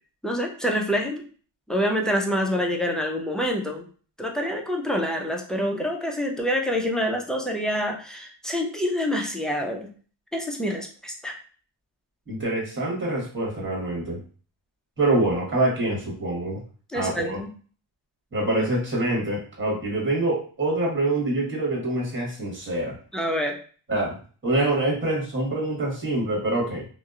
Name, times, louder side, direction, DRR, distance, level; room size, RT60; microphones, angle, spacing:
voice 1, 0.2-1.2 1.7-3.9 4.2-9.9 10.3-11.3 16.9-17.5 23.1-23.6, equal, ahead, 1 dB, 0.3 m, -26 dB
voice 2, 12.3-14.2 15.0-16.6 16.9-17.4 18.3-23.0 23.9-24.2 24.4-26.9, right 2 dB, 25° right, -3 dB, 1.3 m, -25 dB
2.7 x 2.0 x 2.4 m, 0.41 s
cardioid pair, 80°, 50 cm